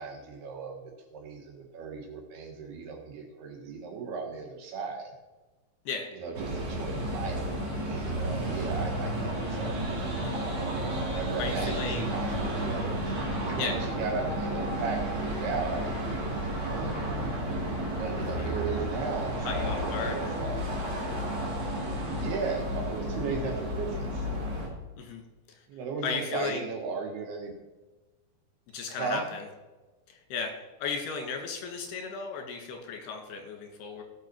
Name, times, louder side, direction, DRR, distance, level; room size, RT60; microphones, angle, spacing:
voice 1, 0.0-5.1 6.1-7.5 7.8-10.0 11.1-13.1 13.4-17.1 17.9-20.7 22.1-24.3 25.7-27.6 28.9-29.2, right 5 dB, 90° right, 0 dB, 3.8 m, -36 dB
sound 1, 6.3-24.7, equal, 40° right, 2.7 m, -32 dB
voice 2, 11.4-12.1 13.6-13.8 18.2-18.5 19.4-20.2 25.0-25.2 25.5-25.6 26.0-26.7 28.7-29.5 30.1-30.5 30.8-34.0, left 5 dB, 85° left, 3 dB, 3.7 m, -35 dB
17.0 x 5.8 x 4.6 m, 1.2 s
omnidirectional pair, 4.4 m